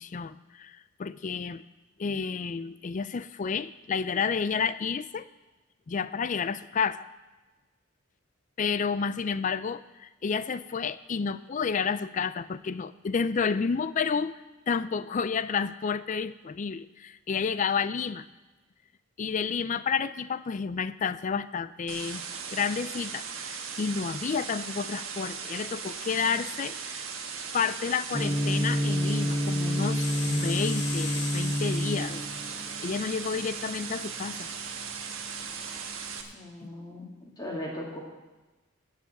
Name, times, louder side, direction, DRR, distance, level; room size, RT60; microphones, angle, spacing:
voice 1, 0.0-1.6 2.0-5.3 5.9-7.1 8.6-14.4 14.7-18.2 19.2-22.2 22.5-27.0 27.5-32.3 32.8-34.5 36.6-36.7, left 6 dB, 35° left, 15 dB, 0.4 m, -30 dB
sound 1, 21.9-36.2, right 6 dB, 75° right, 1.3 m, -38 dB
sound 2, 26.9-32.8, left 8 dB, 55° left, 0.9 m, -42 dB
Gong, 28.1-36.2, equal, 10° right, 0.9 m, -30 dB
voice 2, 36.3-38.0, left 1 dB, 20° left, -3 dB, 1.8 m, -38 dB
14.0 x 4.9 x 9.2 m, 1.2 s
head